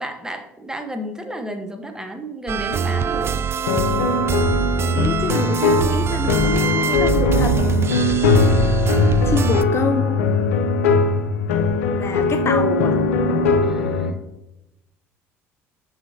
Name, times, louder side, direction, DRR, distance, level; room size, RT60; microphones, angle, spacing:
voice 1, 0.0-3.5 13.6-14.1, equal, 10° right, 6 dB, 1.1 m, -32 dB
sound 1, 2.5-9.6, right 6 dB, 35° right, 0.4 m, -23 dB
sound 2, 3.7-14.1, left 3 dB, 80° left, 0.6 m, -20 dB
voice 2, 4.9-7.6 9.3-10.2 11.9-13.0, left 5 dB, 35° left, 9 dB, 0.5 m, -26 dB
6.3 x 5.9 x 2.8 m, 0.91 s
hypercardioid pair, 65°, 7 cm